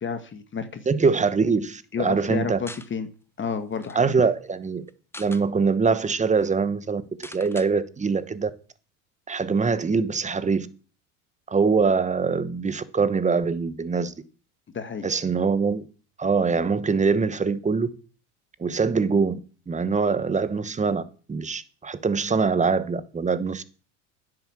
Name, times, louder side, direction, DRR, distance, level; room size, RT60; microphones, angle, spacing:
voice 1, 0.0-0.9 1.9-3.1 3.4-4.1 14.7-15.1, left 6 dB, 25° left, 1.4 m, -30 dB
voice 2, 0.9-2.6 3.9-4.8 5.2-8.5 9.3-10.7 11.5-14.1 15.0-15.8 16.2-17.9 18.6-19.4 19.7-21.0 21.3-23.6, right 5 dB, 15° right, 1.1 m, -23 dB
sound 1, 2.7-2.9 3.4-3.5 3.7-4.0 4.9-5.5 6.0-6.1 6.3-6.5 7.2-7.7, left 2 dB, 5° left, 0.8 m, -42 dB
10.5 x 7.7 x 7.2 m
hypercardioid pair, 95°, 43 cm